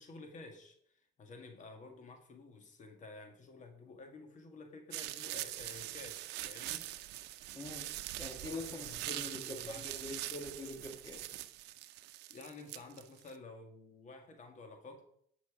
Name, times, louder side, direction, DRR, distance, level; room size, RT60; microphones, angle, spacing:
voice 1, 0.0-6.9 8.4-9.8 12.3-15.0, left 3 dB, 45° left, 5 dB, 1.8 m, -52 dB
sound 1, 4.9-13.3, right 15 dB, 85° right, 0.6 m, -43 dB
voice 2, 7.5-7.9 8.2-11.4, left 2 dB, 20° left, 2 dB, 1.5 m, -44 dB
10.5 x 6.1 x 4.9 m, 0.67 s
cardioid pair, 110°, 17 cm